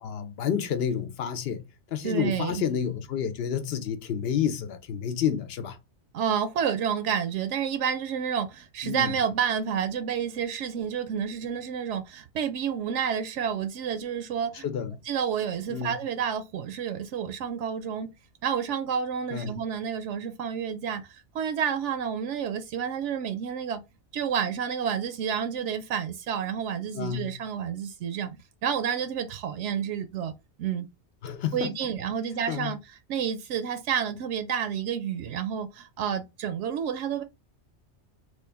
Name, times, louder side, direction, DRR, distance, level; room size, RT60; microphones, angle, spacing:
voice 1, 0.0-1.6 1.9-5.8 8.8-9.1 14.6-15.0 15.7-15.9 19.3-19.6 26.9-27.4 31.2-31.7 32.5-32.7, left 8 dB, 65° left, 0.8 m, -29 dB
voice 2, 2.0-2.6 6.1-14.7 15.0-18.1 18.4-23.8 24.1-30.3 30.6-30.9 31.5-37.2, right 8 dB, 80° right, 0.9 m, -30 dB
3.2 x 2.4 x 3.4 m
omnidirectional pair, 1.2 m